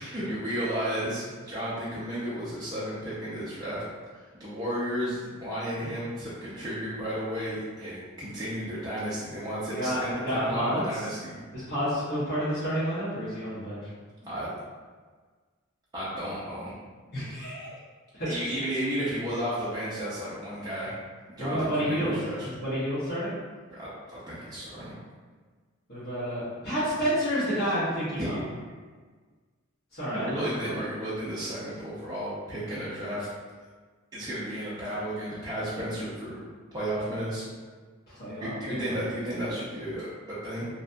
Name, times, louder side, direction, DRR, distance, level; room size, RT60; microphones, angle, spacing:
voice 1, 0.0-3.8 4.4-11.4 14.2-14.5 15.9-16.7 18.2-20.9 21.4-22.5 23.7-24.9 28.2-28.5 30.1-33.3 34.1-36.4 36.7-37.4 38.4-40.7, equal, 20° right, -11 dB, 0.5 m, -33 dB
voice 2, 9.7-11.0 11.5-13.9 17.1-17.7 18.1-18.5 21.4-22.1 22.4-23.3 25.9-28.4 29.9-30.8 38.1-39.0, equal, 50° left, -15 dB, 1.1 m, -30 dB
2.6 x 2.5 x 2.2 m, 1.5 s
head